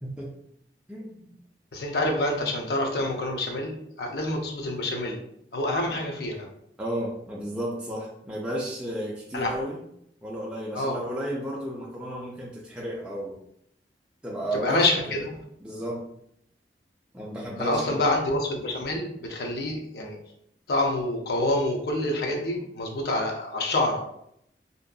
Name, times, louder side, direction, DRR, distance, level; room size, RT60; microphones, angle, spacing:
voice 1, 0.0-0.3 0.9-1.3 6.8-9.8 10.2-13.4 14.2-15.2 15.6-16.0 17.1-18.0, equal, 5° right, -6 dB, 0.3 m, -33 dB
voice 2, 1.7-5.2 5.5-6.5 9.3-9.5 10.7-11.0 14.5-15.4 17.6-20.2 20.7-24.0, left 1 dB, 65° left, 1 dB, 0.5 m, -27 dB
2.6 x 2.3 x 2.2 m, 0.72 s
head